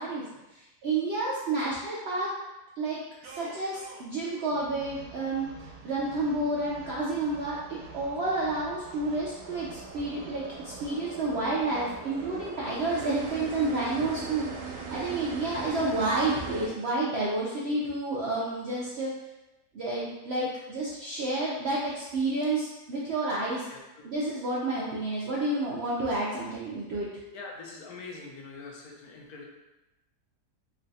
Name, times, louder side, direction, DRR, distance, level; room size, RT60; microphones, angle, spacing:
voice 1, 0.0-2.3 2.8-5.5 5.8-19.1 19.7-23.7 24.0-27.1, right 2 dB, 65° right, -6 dB, 0.6 m, -30 dB
sound 1, 3.2-16.7, right 5 dB, 85° right, 1.2 m, -42 dB
voice 2, 23.7-24.1 27.3-29.5, left 3 dB, 75° left, -1 dB, 1.1 m, -43 dB
3.2 x 2.3 x 3.9 m, 0.99 s
omnidirectional pair, 1.7 m